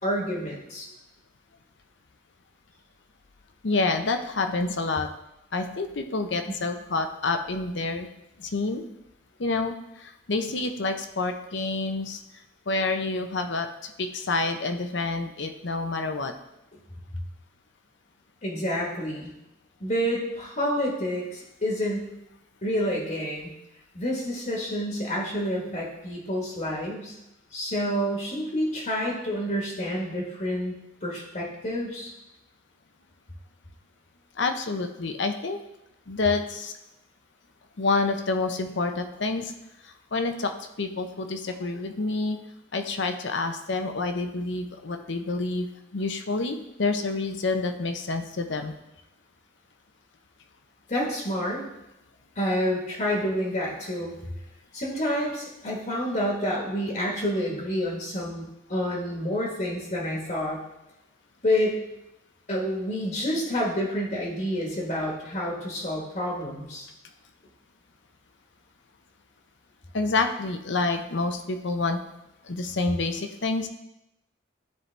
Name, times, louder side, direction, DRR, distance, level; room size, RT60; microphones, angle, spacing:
voice 1, 0.0-0.9 6.5-6.6 18.4-19.3 19.8-22.0 22.6-23.5 23.9-27.2 27.5-30.7 31.0-32.1 50.9-51.6 52.3-54.1 54.7-60.6 61.4-61.8 62.5-66.9, equal, 40° left, -2 dB, 1.4 m, -28 dB
voice 2, 3.6-5.1 5.5-8.1 8.4-8.8 9.4-9.7 10.0-12.2 12.7-16.3 34.4-35.6 36.1-36.7 37.8-39.5 40.1-40.5 40.8-42.4 42.7-45.7 45.9-48.7 69.9-72.0 72.5-73.7, left 3 dB, 65° left, 6 dB, 0.7 m, -28 dB
12.5 x 4.6 x 3.4 m, 0.90 s
head